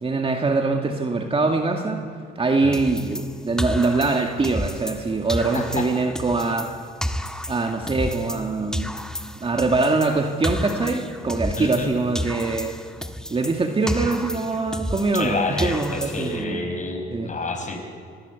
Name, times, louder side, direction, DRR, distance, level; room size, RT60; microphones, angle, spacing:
voice 1, 0.0-2.0 2.4-6.7 7.5-8.9 9.4-12.7 13.3-16.6 17.1-17.3, right 3 dB, 30° right, 3 dB, 2.1 m, -23 dB
sound 1, 2.7-5.0 5.3-8.5 8.7-11.9 12.1-15.3 15.6-16.4, equal, 5° left, 1.8 m, -31 dB
voice 2, 11.6-11.9 15.1-17.8, left 3 dB, 40° left, 5 dB, 5.2 m, -29 dB
28.0 x 21.5 x 8.2 m, 2.3 s
cardioid pair, 90°, 20 cm